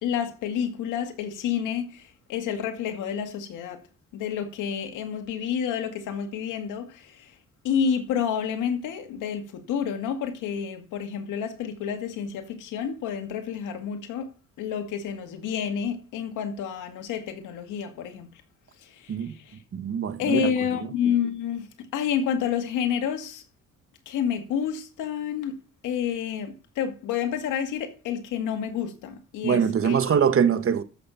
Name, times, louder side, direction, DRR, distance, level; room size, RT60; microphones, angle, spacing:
voice 1, 0.0-3.8 4.1-7.4 7.6-14.3 14.6-18.3 18.8-19.6 20.2-23.4 24.1-25.6 25.8-30.2, left 8 dB, 90° left, 2.0 m, -29 dB
voice 2, 19.7-20.5 29.4-30.8, right 7 dB, 45° right, 1.3 m, -23 dB
14.0 x 6.6 x 5.7 m
cardioid pair, 90°, 30 cm